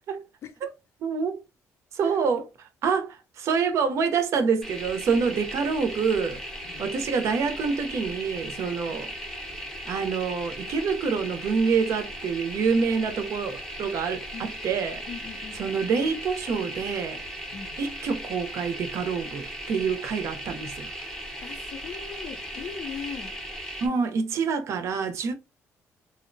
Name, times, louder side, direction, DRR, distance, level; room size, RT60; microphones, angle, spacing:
voice 1, 1.0-1.4 1.9-2.5 2.8-6.4 6.8-9.1 9.9-15.0 15.6-17.2 17.8-20.9 23.8-25.3, right 5 dB, 60° right, 0.6 m, -26 dB
voice 2, 2.0-2.4 6.6-6.9 8.9-9.0 14.3-14.5 15.1-15.8 17.5-17.8 21.4-23.4, left 7 dB, 55° left, 0.5 m, -40 dB
sound 1, 4.6-23.9, equal, 10° left, 0.7 m, -37 dB
2.7 x 2.0 x 2.5 m
cardioid pair, 130°, 6 cm